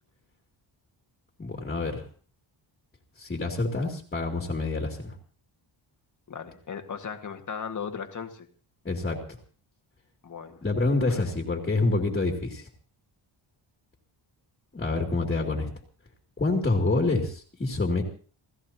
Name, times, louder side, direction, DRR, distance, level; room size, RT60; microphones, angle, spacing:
voice 1, 1.4-2.0 3.2-5.2 8.8-9.2 10.6-12.7 14.7-15.7 16.4-18.0, left 2 dB, 20° left, 1 dB, 2.7 m, -27 dB
voice 2, 6.3-8.5 10.2-10.6 11.1-11.3, left 6 dB, 40° left, 5 dB, 2.0 m, -37 dB
30.0 x 16.5 x 2.9 m, 0.41 s
wide cardioid pair, 170°, 48 cm